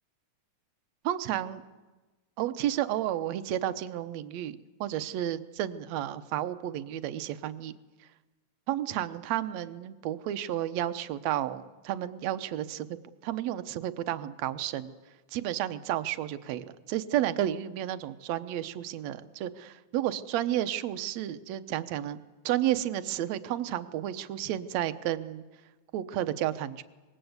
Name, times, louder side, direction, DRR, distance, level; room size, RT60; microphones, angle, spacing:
voice 1, 1.0-1.6 2.4-7.8 8.7-12.9 13.2-14.9 15.3-22.2 22.5-25.4 25.9-26.8, right 12 dB, 70° right, 11 dB, 2.0 m, -32 dB
26.0 x 21.0 x 8.0 m, 1.2 s
omnidirectional pair, 3.4 m